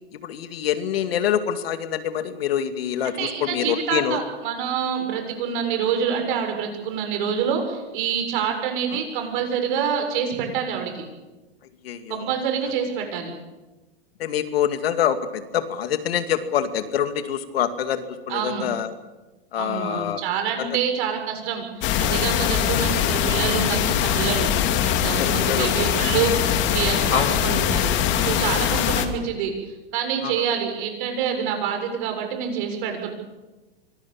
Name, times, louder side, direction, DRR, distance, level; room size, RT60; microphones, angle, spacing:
voice 1, 0.2-4.2 11.8-12.3 14.2-18.9 19.5-20.2 20.6-20.7 25.2-25.7 27.1-27.3 30.2-30.3, left 9 dB, 70° left, 9 dB, 2.4 m, -25 dB
voice 2, 3.0-11.1 12.1-13.3 18.3-18.7 19.5-24.5 24.8-33.1, right 7 dB, 55° right, 4 dB, 7.2 m, -27 dB
sound 1, 21.8-29.1, left 10 dB, 35° left, 2.5 m, -22 dB
24.5 x 20.0 x 7.3 m, 1.1 s
hypercardioid pair, 130°, 31 cm